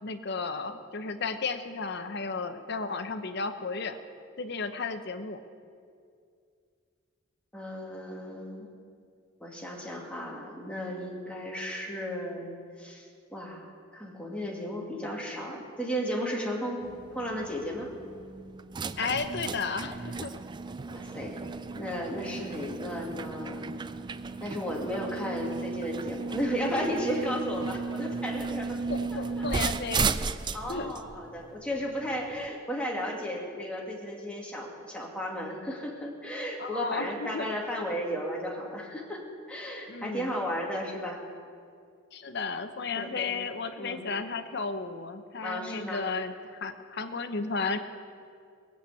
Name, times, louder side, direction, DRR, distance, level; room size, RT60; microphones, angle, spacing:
voice 1, 0.0-4.0 4.4-5.4 19.0-20.3 28.9-30.1 30.7-30.9 36.6-37.5 39.9-40.3 42.1-47.8, left 4 dB, 55° left, 9 dB, 0.8 m, -33 dB
voice 2, 7.5-8.7 9.4-12.5 12.8-16.8 17.1-17.9 20.9-21.4 21.8-23.7 24.4-28.8 29.1-29.4 30.5-39.2 39.5-41.2 43.0-43.3 43.8-44.0 45.4-46.0, equal, 5° left, -2 dB, 2.3 m, -34 dB
sound 1, 16.8-32.5, right 4 dB, 20° right, 0.4 m, -35 dB
19.0 x 7.9 x 8.2 m, 2.4 s
head